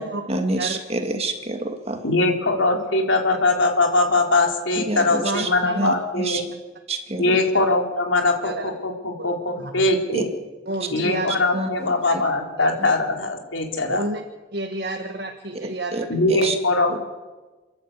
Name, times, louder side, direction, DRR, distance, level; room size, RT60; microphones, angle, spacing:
voice 1, 0.3-2.0 4.8-6.4 6.9-7.4 10.1-10.2 11.5-12.2 12.8-12.9 15.6-16.6 16.9-17.0, right 2 dB, 30° right, 6 dB, 1.8 m, -28 dB
voice 2, 2.0-6.4 7.2-10.3 10.9-14.0 16.1-17.0, left 2 dB, 80° left, 2 dB, 3.4 m, -21 dB
voice 3, 5.2-5.9 7.3-7.6 8.4-8.7 9.2-9.3 9.6-9.9 10.7-11.3 12.6-12.7 13.9-14.2 14.5-16.1 16.4-16.5, right 2 dB, 55° right, 5 dB, 1.4 m, -30 dB
28.0 x 11.5 x 8.3 m, 1.2 s
head